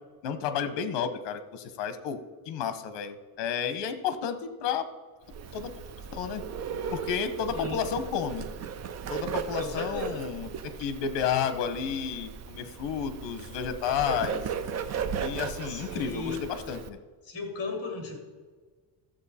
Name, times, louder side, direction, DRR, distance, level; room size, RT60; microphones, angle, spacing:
voice 1, 0.2-2.2 2.5-4.9 5.5-5.7 6.1-6.4 6.9-8.5 9.1-14.5 15.2-17.0, left 7 dB, 70° left, 11 dB, 1.0 m, -31 dB
Bird, 5.3-16.9, right 7 dB, 35° right, 0.6 m, -36 dB
voice 2, 7.5-7.9 9.6-10.2 15.6-16.4 17.2-18.2, left 4 dB, 30° left, 2 dB, 2.5 m, -36 dB
12.5 x 7.5 x 4.2 m, 1.4 s
cardioid pair, 165°, 45 cm